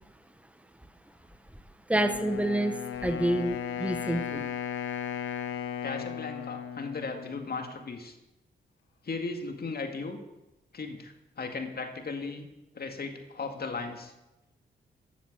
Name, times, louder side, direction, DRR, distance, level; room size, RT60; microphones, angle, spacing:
Wind instrument woodwind instrument, 1.9-7.9, left 9 dB, 85° left, 1.0 m, -36 dB
voice 1, 1.9-4.5, right 1 dB, 5° right, 9 dB, 1.3 m, -28 dB
voice 2, 5.8-8.1 9.0-10.2 10.7-12.5 12.7-14.1, left 4 dB, 50° left, 5 dB, 2.1 m, -36 dB
12.5 x 7.3 x 6.7 m, 0.98 s
supercardioid pair, 45°, 20 cm